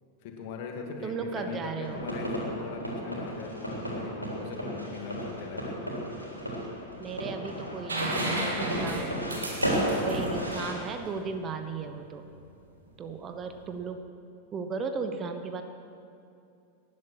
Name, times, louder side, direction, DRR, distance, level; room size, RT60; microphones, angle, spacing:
voice 1, 0.2-5.8, left 4 dB, 50° left, 2 dB, 2.4 m, -40 dB
voice 2, 1.0-2.0 7.0-12.2 13.0-14.0 14.5-15.6, right 5 dB, 25° right, 7 dB, 1.1 m, -36 dB
sound 1, 1.8-10.7, equal, 90° left, 3.6 m, -33 dB
sound 2, 7.9-11.6 13.5-13.6, right 1 dB, 70° right, 2.7 m, -33 dB
19.0 x 11.0 x 6.4 m, 2.6 s
figure-of-eight pair, 90°, 0 cm